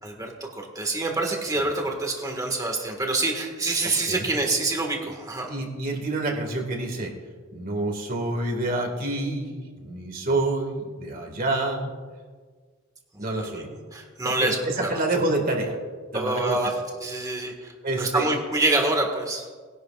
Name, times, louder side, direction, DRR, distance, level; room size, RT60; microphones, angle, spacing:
voice 1, 0.0-5.5 13.4-13.6 13.9-15.0 16.1-19.5, right 2 dB, 15° right, 2 dB, 1.8 m, -26 dB
voice 2, 5.5-7.1 7.5-11.9 13.2-13.7 14.2-15.8 16.1-16.6 17.2-17.4 17.8-18.3, right 2 dB, 45° right, 2 dB, 2.2 m, -28 dB
20.5 x 11.0 x 2.5 m, 1.5 s
head